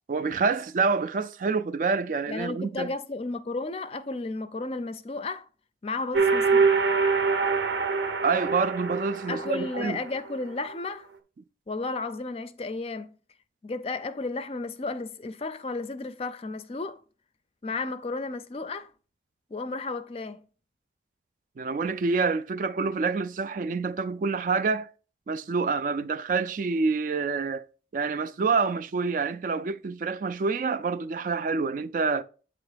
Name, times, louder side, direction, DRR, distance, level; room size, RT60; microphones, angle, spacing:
voice 1, 0.1-2.9 8.2-10.0 21.6-24.9 25.3-27.7 27.9-32.2, right 4 dB, 45° right, 0.3 m, -27 dB
voice 2, 2.3-5.5 5.8-6.8 9.3-11.1 11.7-13.1 13.6-17.0 17.6-18.9 19.5-20.4, left 3 dB, 35° left, 0.4 m, -33 dB
sound 1, 6.1-10.1, right 4 dB, 85° right, 0.8 m, -24 dB
8.0 x 2.9 x 4.9 m
head